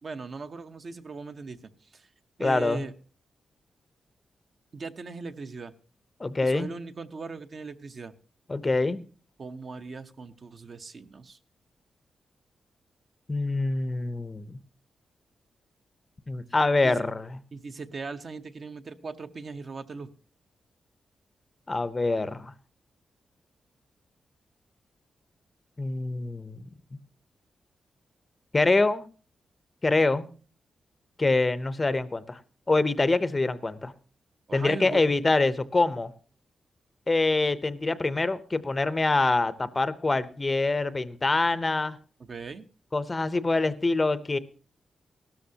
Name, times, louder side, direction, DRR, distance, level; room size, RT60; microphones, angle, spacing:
voice 1, 0.0-2.1 2.4-2.9 4.7-5.7 6.4-8.1 9.4-11.4 16.8-17.1 17.5-20.1 34.5-35.1 42.2-42.7, right 4 dB, 45° right, 8 dB, 0.8 m, -39 dB
voice 2, 2.4-2.8 6.2-6.7 8.5-9.0 13.3-14.6 16.3-17.4 21.7-22.5 25.8-26.6 28.5-29.1 29.8-30.3 31.2-32.4 32.7-33.9 34.5-36.1 37.1-42.0 42.9-44.4, left 3 dB, 20° left, 15 dB, 0.7 m, -25 dB
17.5 x 13.0 x 2.8 m, 0.39 s
wide cardioid pair, 150°, 0 cm